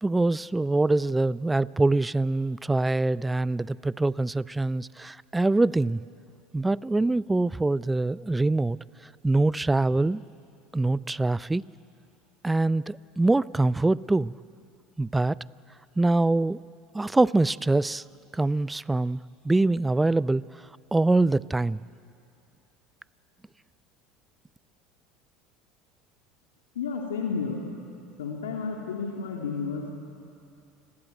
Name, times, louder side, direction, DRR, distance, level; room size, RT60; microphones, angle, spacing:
voice 1, 0.0-6.0 6.5-8.8 9.2-10.2 10.7-11.6 12.4-14.3 15.0-15.4 16.0-16.6 16.9-18.0 18.3-21.8, right 2 dB, 10° right, 20 dB, 0.5 m, -24 dB
voice 2, 26.7-27.6 28.2-29.9, left 5 dB, 85° left, 0 dB, 2.6 m, -31 dB
28.5 x 21.0 x 9.2 m, 2.5 s
hypercardioid pair, 75°, 0 cm